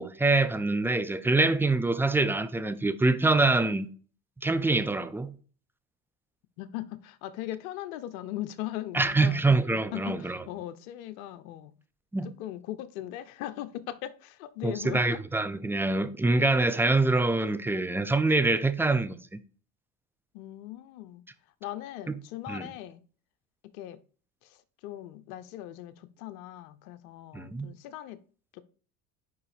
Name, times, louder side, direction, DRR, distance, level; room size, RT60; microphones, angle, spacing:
voice 1, 0.0-3.9 4.4-5.3 8.9-10.4 12.1-12.3 14.6-19.2 22.1-22.2 22.5-22.7 27.3-27.7, right 3 dB, 5° right, 0.4 m, -25 dB
voice 2, 6.6-9.4 9.9-11.7 12.4-15.2 20.3-21.2 21.6-23.0 23.7-24.0 24.4-24.6 24.8-28.2 28.5-28.6, left 13 dB, 75° left, 0.6 m, -39 dB
4.9 x 4.6 x 4.9 m
hypercardioid pair, 75°, 42 cm